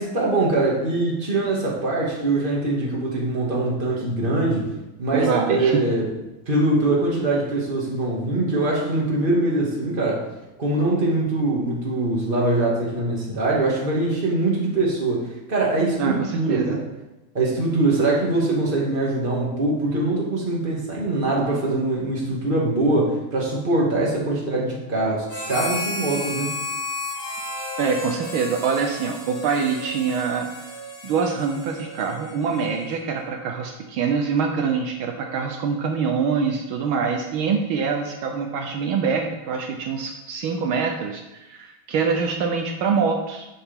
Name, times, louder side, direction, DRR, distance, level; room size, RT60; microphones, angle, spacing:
voice 1, 0.0-4.7 5.0-6.1 6.5-10.3 10.6-16.8 17.3-26.5, right 2 dB, 25° right, -3 dB, 2.2 m, -23 dB
voice 2, 5.1-5.8 16.0-16.8 27.8-30.5 31.0-43.5, right 5 dB, 75° right, 3 dB, 1.6 m, -24 dB
Harmonica, 25.3-33.0, left 2 dB, 75° left, 4.0 m, -33 dB
11.5 x 7.9 x 3.7 m, 0.99 s
omnidirectional pair, 2.4 m